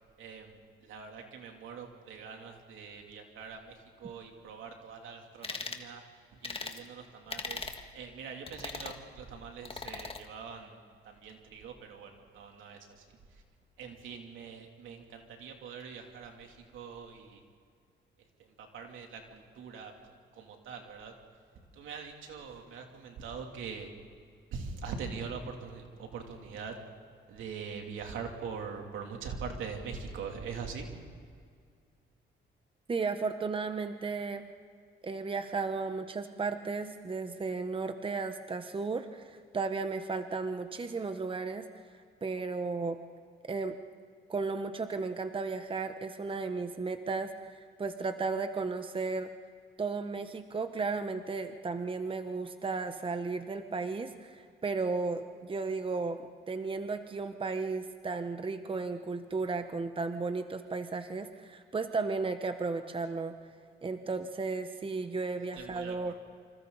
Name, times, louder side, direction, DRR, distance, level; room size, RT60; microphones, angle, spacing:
voice 1, 0.2-6.0 6.3-13.4 13.8-17.4 18.4-21.1 21.7-23.9 24.5-26.7 27.3-30.9 65.4-66.1, right 5 dB, 80° right, 2 dB, 3.2 m, -43 dB
sound 1, 5.4-5.8 6.4-6.8 7.3-7.8 8.5-9.0 9.6-10.2, left 4 dB, 30° left, 1.7 m, -39 dB
voice 2, 32.9-34.5 35.0-41.7 42.2-43.0 43.4-43.8 44.3-49.3 49.8-63.3 63.8-66.1, right 4 dB, 25° right, 8 dB, 1.1 m, -34 dB
27.0 x 26.5 x 4.1 m, 2.2 s
cardioid pair, 90°, 20 cm